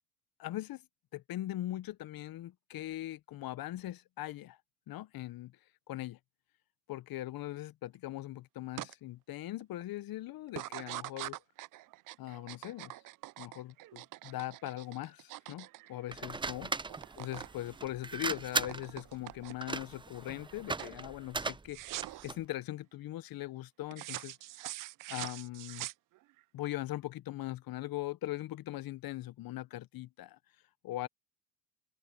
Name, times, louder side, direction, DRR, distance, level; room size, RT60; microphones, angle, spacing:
voice 1, 0.4-0.8 1.1-4.6 4.9-5.6 5.9-6.2 6.9-11.4 12.2-12.9 13.4-16.7 17.2-24.4 25.1-25.9 26.5-30.4 30.8-31.1, left 15 dB, 50° left, 1.0 m, -40 dB
sound 1, 8.8-8.9 9.4-9.8 10.5-16.5 16.8-17.5 17.8-19.8 20.2-20.5 20.8-21.0 21.7-22.3 23.9-26.4, right 17 dB, 45° right, 0.5 m, -44 dB
putting cd into player, 16.1-22.5, right 3 dB, 10° right, 0.7 m, -38 dB
supercardioid pair, 85°, 46 cm